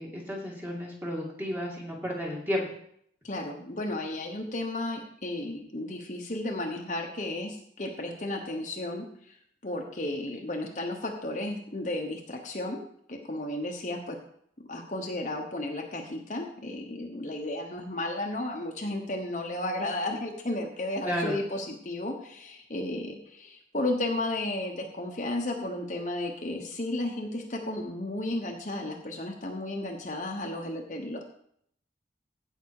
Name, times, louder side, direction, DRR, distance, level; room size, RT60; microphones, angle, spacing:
voice 1, 0.0-2.6 21.1-21.4, equal, 10° right, -2 dB, 2.5 m, -32 dB
voice 2, 3.2-9.4 9.6-12.8 13.1-14.2 14.7-31.2, left 1 dB, 40° left, 1 dB, 1.2 m, -33 dB
16.0 x 5.7 x 4.8 m, 0.69 s
head